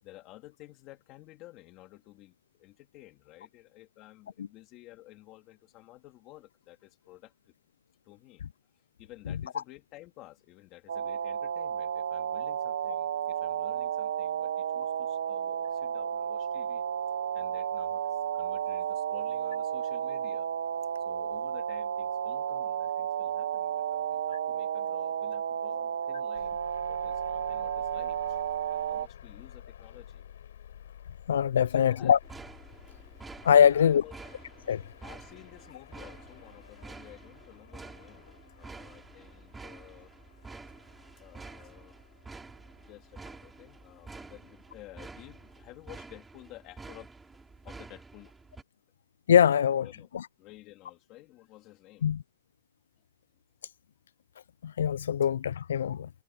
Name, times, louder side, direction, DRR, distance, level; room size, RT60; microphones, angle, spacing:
voice 1, 0.0-7.5 8.0-8.4 9.0-20.5 21.0-30.3 31.7-32.2 33.6-34.3 35.0-40.1 41.2-42.0 42.7-47.1 47.6-48.3 49.8-50.1 50.4-52.1, left 17 dB, 20° left, 3.5 m, -53 dB
sound 1, 10.9-29.1, right 9 dB, 75° right, 0.9 m, -32 dB
sound 2, 26.4-46.0, left 10 dB, 65° left, 5.6 m, -53 dB
voice 2, 31.3-32.2 33.4-34.0 34.7-34.8 49.3-49.9 52.0-52.2 54.6-56.1, left 8 dB, 85° left, 0.4 m, -22 dB
sound 3, 32.2-48.6, right 3 dB, 5° right, 3.5 m, -49 dB
hypercardioid pair, 180°, 0 cm